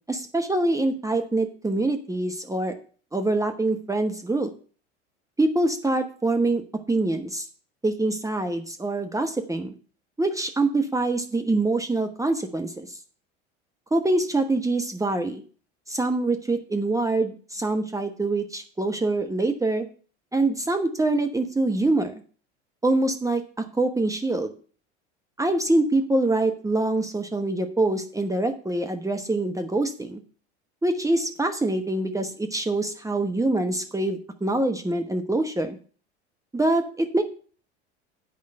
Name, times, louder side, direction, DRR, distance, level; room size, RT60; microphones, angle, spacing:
voice 1, 0.1-2.7 3.1-4.5 5.4-6.6 6.9-7.5 7.8-9.7 10.2-13.0 13.9-15.4 15.9-19.8 20.3-22.1 22.8-23.4 23.7-24.5 25.4-30.2 30.8-35.8 36.5-37.2, right 2 dB, 10° right, 5 dB, 1.1 m, -25 dB
9.3 x 5.0 x 7.8 m, 0.41 s
hypercardioid pair, 75°, 34 cm